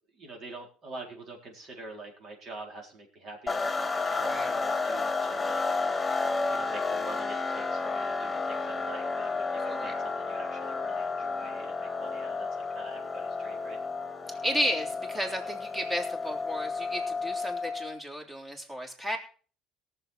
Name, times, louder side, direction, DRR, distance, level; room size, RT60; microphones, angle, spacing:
voice 1, 0.1-5.6 6.5-13.8, right 2 dB, 50° right, 1 dB, 4.4 m, -45 dB
sound 1, 3.5-18.0, left 4 dB, 15° left, 2.0 m, -32 dB
voice 2, 4.2-4.5 9.7-9.9 14.3-19.2, equal, 20° right, 3 dB, 3.5 m, -33 dB
18.5 x 7.1 x 4.5 m, 0.40 s
supercardioid pair, 80°, 0 cm